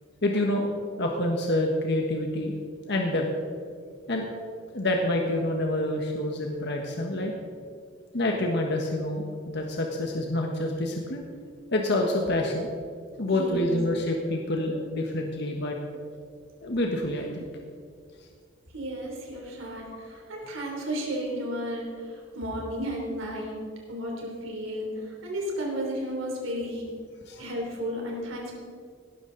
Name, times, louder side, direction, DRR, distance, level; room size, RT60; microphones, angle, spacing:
voice 1, 0.2-0.7 1.0-2.5 2.9-3.2 4.1-4.3 4.7-7.3 8.1-11.2 11.7-12.7 13.2-15.8 16.6-17.5 19.9-20.1 27.3-27.5, left 1 dB, 60° left, 1 dB, 1.4 m, -27 dB
voice 2, 13.3-13.8 18.7-23.6 23.9-26.8 27.4-28.6, equal, 85° right, -1 dB, 3.5 m, -33 dB
18.0 x 12.5 x 4.0 m, 2.1 s
head